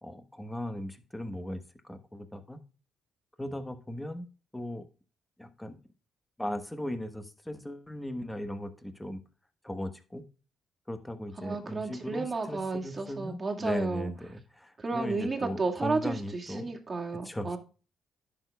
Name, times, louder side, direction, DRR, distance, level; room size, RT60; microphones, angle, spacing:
voice 1, 0.0-2.6 3.4-4.3 4.5-4.9 5.4-5.8 6.4-9.2 9.6-10.2 10.9-16.7 17.2-17.6, left 1 dB, 10° left, 8 dB, 1.2 m, -37 dB
voice 2, 11.4-14.1 14.8-17.6, right 3 dB, 30° right, 2 dB, 2.1 m, -32 dB
10.5 x 6.7 x 2.3 m, 0.35 s
cardioid pair, 90°, 0 cm